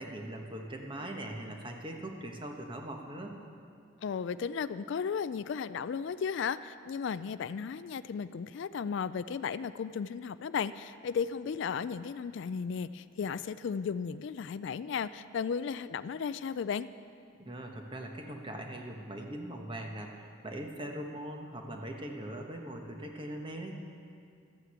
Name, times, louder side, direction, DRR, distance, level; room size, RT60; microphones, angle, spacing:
voice 1, 0.0-3.3 17.4-23.7, right 1 dB, 25° right, 2 dB, 1.3 m, -41 dB
voice 2, 4.0-16.9, left 6 dB, 60° left, 14 dB, 0.3 m, -35 dB
13.0 x 9.3 x 8.1 m, 2.3 s
head